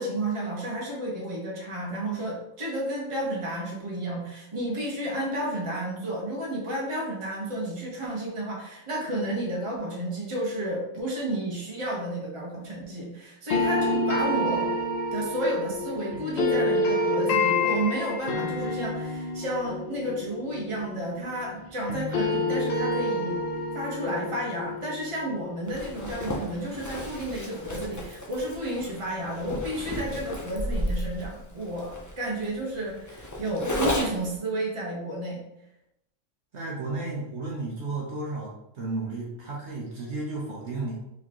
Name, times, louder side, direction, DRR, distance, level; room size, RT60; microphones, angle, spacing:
voice 1, 0.0-14.7 15.1-35.5, right 1 dB, 25° right, -4 dB, 1.1 m, -31 dB
sound 1, 13.5-21.6 21.9-26.8, left 2 dB, 55° left, 0.8 m, -28 dB
Zipper (clothing), 25.7-34.4, equal, 25° left, 0.4 m, -33 dB
voice 2, 36.5-41.0, right 3 dB, 60° right, -4 dB, 1.2 m, -33 dB
4.5 x 3.6 x 3.0 m, 0.86 s
omnidirectional pair, 1.4 m